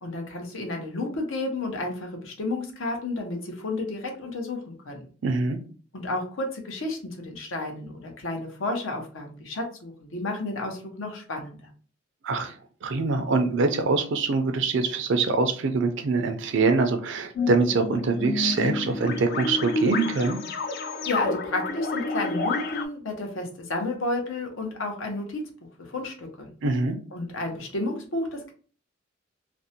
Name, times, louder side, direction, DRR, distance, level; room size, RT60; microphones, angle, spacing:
voice 1, 0.0-5.1 5.9-11.7 21.1-25.4 25.8-26.5 27.1-28.5, left 2 dB, 80° left, 3 dB, 0.7 m, -31 dB
voice 2, 5.2-5.6 12.2-20.4 26.6-27.0, right 4 dB, 65° right, 7 dB, 0.4 m, -24 dB
sound 1, 17.4-22.9, left 3 dB, 55° left, 0.3 m, -29 dB
2.5 x 2.1 x 2.7 m, 0.41 s
head